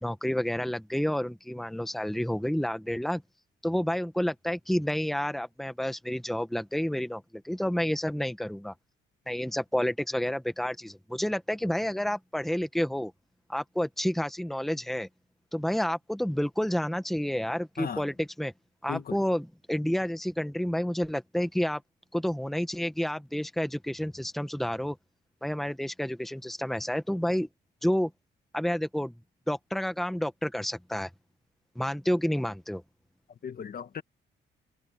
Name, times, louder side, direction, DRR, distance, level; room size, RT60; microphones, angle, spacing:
voice 1, 0.0-3.2 3.6-8.7 9.3-13.1 13.5-15.1 15.5-18.5 18.8-21.8 22.1-25.0 25.4-27.5 27.8-28.1 28.5-29.1 29.5-31.1 31.7-32.8, equal, ahead, 1.5 m, -30 dB
voice 2, 33.4-34.0, left 7 dB, 50° left, 1.6 m, -36 dB
cardioid pair, 90°, 20 cm